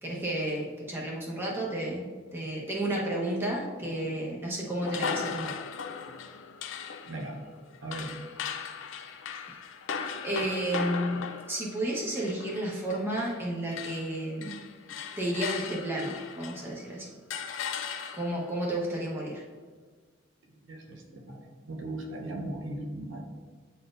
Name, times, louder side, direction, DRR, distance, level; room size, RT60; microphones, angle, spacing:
voice 1, 0.0-5.5 9.4-9.5 10.2-14.5 15.2-17.1 18.2-19.4, right 1 dB, 10° right, -4 dB, 1.0 m, -32 dB
sound 1, 4.8-13.5 13.7-16.8 17.3-18.5, left 6 dB, 80° left, 0.4 m, -38 dB
voice 2, 7.0-7.4 7.8-8.2 20.5-23.3, right 1 dB, 80° right, 0 dB, 0.9 m, -38 dB
9.2 x 4.2 x 2.5 m, 1.5 s
head